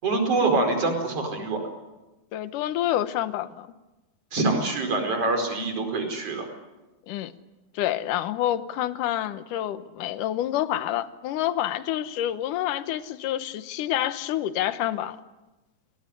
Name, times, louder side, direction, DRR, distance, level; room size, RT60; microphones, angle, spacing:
voice 1, 0.0-1.6 4.3-6.5, right 3 dB, 45° right, 5 dB, 5.7 m, -25 dB
voice 2, 2.3-3.7 7.1-7.3 7.7-15.2, left 12 dB, 75° left, 12 dB, 2.6 m, -28 dB
29.5 x 20.5 x 10.0 m, 1.1 s
omnidirectional pair, 3.9 m